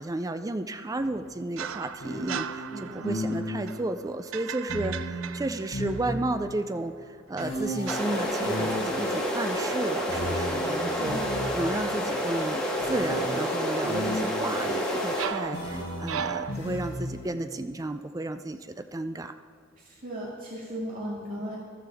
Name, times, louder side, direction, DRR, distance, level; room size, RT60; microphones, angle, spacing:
voice 1, 0.0-11.2 11.5-19.4, right 2 dB, 15° right, 10 dB, 0.4 m, -32 dB
sound 1, 1.0-1.1 2.0-3.8 4.7-6.6 7.4-11.9 12.8-17.3, left 1 dB, 65° left, 3.5 m, -35 dB
sound 2, 1.6-6.4 7.4-9.8 10.1-10.4 14.5-16.5, right 8 dB, 75° right, 0.5 m, -38 dB
voice 2, 2.7-3.1 11.0-11.3 19.8-21.6, equal, 45° right, -6 dB, 2.1 m, -36 dB
sound 3, 7.9-15.3, equal, 5° left, 1.9 m, -29 dB
14.5 x 13.0 x 3.5 m, 2.3 s
head